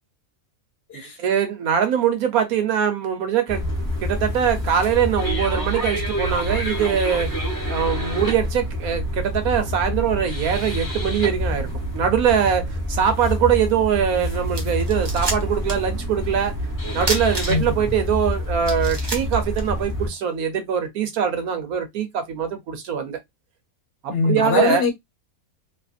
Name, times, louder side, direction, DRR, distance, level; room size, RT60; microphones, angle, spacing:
voice 1, 1.2-3.7 4.0-7.3 7.7-11.7 11.9-16.5 16.9-23.2 24.0-24.8, right 8 dB, 85° right, 1.3 m, -22 dB
sound 1, 3.5-20.1, equal, 15° left, 0.9 m, -27 dB
sound 2, 14.1-14.2 14.5-15.9 16.2-16.3 17.0-17.9 18.3-18.4 18.6-20.2, right 2 dB, 30° right, 0.5 m, -29 dB
voice 2, 24.1-24.9, left 3 dB, 60° left, 0.7 m, -21 dB
2.8 x 2.5 x 2.4 m
omnidirectional pair, 1.5 m